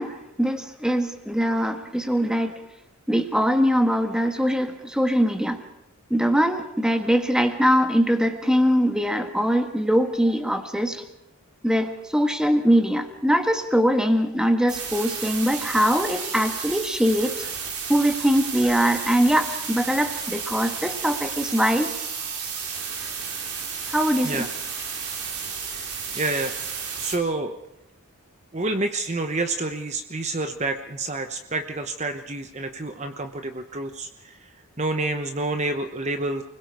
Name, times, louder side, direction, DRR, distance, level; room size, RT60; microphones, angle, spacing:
voice 1, 0.0-2.6 3.1-5.6 6.1-11.0 11.6-17.5 17.9-21.9 23.9-24.5, equal, 5° right, 6 dB, 1.5 m, -22 dB
sound 1, 14.7-27.2, right 6 dB, 85° right, 4.0 m, -32 dB
voice 2, 26.1-26.7 27.0-27.6 28.5-34.1 34.8-36.4, right 2 dB, 30° right, 7 dB, 1.0 m, -28 dB
29.5 x 21.0 x 4.8 m, 0.82 s
head